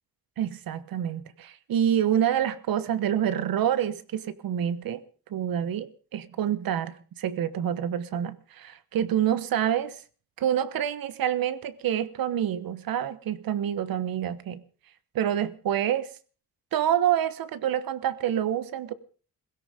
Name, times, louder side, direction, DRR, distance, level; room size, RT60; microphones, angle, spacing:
voice 1, 0.4-5.0 5.3-10.0 10.4-14.6 15.1-16.1 16.7-18.9, right 10 dB, 70° right, 1.3 m, -27 dB
17.0 x 16.5 x 5.1 m
wide cardioid pair, 175°, 36 cm